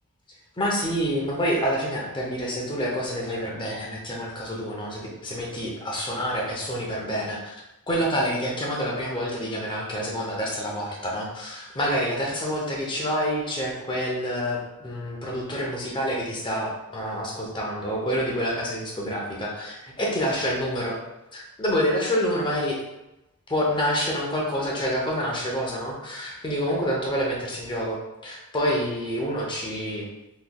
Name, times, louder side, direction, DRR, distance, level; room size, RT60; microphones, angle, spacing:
voice 1, 0.6-7.6 7.9-21.0 21.3-22.8 23.5-28.0 28.2-30.1, equal, 20° left, -2 dB, 0.7 m, -27 dB
3.8 x 3.1 x 2.3 m, 0.97 s
head